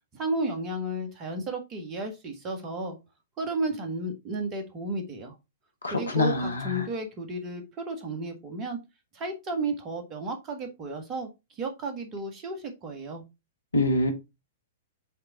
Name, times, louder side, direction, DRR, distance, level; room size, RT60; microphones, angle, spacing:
voice 1, 0.1-3.0 3.4-5.4 5.9-8.8 9.1-11.3 11.6-13.2, right 2 dB, 25° right, 1.8 m, -33 dB
voice 2, 5.8-6.9 13.7-14.1, left 2 dB, 75° left, 1.5 m, -25 dB
7.7 x 3.8 x 3.9 m
figure-of-eight pair, 105°, 0 cm